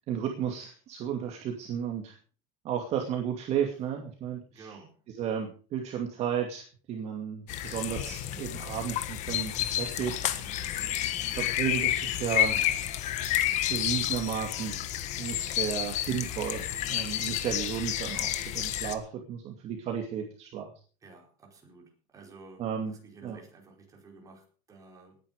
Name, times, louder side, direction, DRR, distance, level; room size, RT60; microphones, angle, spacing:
voice 1, 0.1-2.2 2.6-4.7 5.2-10.4 11.4-12.8 13.7-14.8 15.2-20.7 22.6-22.9 23.2-23.4, right 8 dB, 40° right, 2 dB, 2.4 m, -33 dB
voice 2, 4.5-5.0 10.1-10.6 21.0-25.2, right 3 dB, 20° right, 1 dB, 5.0 m, -52 dB
sound 1, 7.5-18.9, left 12 dB, 45° left, 1.6 m, -30 dB
18.5 x 10.0 x 5.2 m, 0.39 s
cardioid pair, 170°, 17 cm